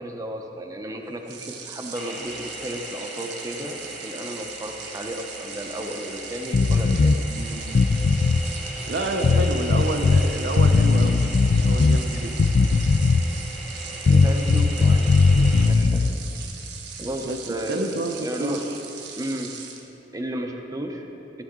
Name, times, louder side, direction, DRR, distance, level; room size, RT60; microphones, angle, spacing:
voice 1, 0.0-7.1 9.2-9.5 14.1-16.0 17.0-18.6 19.2-19.5 20.1-21.0, right 1 dB, 20° right, 2 dB, 0.7 m, -33 dB
sound 1, 1.2-19.8, right 6 dB, 80° right, 1.0 m, -40 dB
sound 2, 1.9-15.7, equal, 5° left, 1.1 m, -38 dB
sound 3, 6.5-7.2 7.7-8.4 9.2-10.2 10.6-12.0 12.4-13.3 14.1-16.1, left 4 dB, 60° left, 0.4 m, -18 dB
voice 2, 7.4-7.8 8.9-11.2 11.6-12.4 17.2-17.4 17.7-18.6, right 2 dB, 65° right, 5 dB, 0.7 m, -29 dB
14.5 x 8.2 x 3.7 m, 3.0 s
head